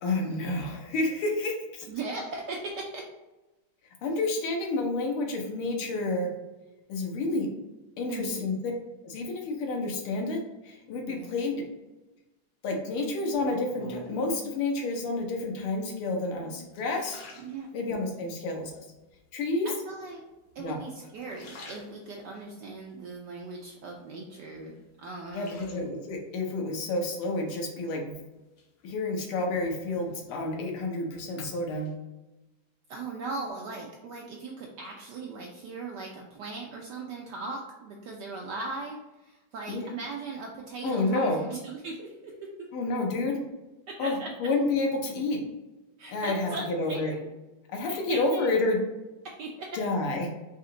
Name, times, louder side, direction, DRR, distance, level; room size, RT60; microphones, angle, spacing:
voice 1, 0.0-1.9 4.0-6.3 6.9-7.5 8.0-8.5 9.0-11.6 12.6-17.2 17.7-18.8 19.3-19.7 20.6-20.8 25.3-28.2 28.8-31.9 39.7-39.9 40.8-41.4 42.7-43.4 44.0-45.4 46.1-47.1 47.7-48.8 49.7-50.3, left 2 dB, 85° left, 1 dB, 1.8 m, -29 dB
voice 2, 1.8-3.0 8.1-8.5 11.1-11.4 17.4-17.7 19.6-20.2 20.5-25.6 32.9-42.5 43.9-44.3 46.0-47.1 47.9-48.5 49.2-49.7, right 3 dB, 80° right, 0 dB, 0.9 m, -39 dB
sound 1, 13.3-14.4 15.2-15.7 16.2-18.2 18.7-19.3 20.1-20.8 21.1-22.4 22.9-24.1 24.5-26.2 27.5-28.1 28.6-31.2 31.4-31.9, left 1 dB, 60° left, 1.0 m, -49 dB
4.2 x 2.8 x 3.7 m, 1.0 s
omnidirectional pair, 2.3 m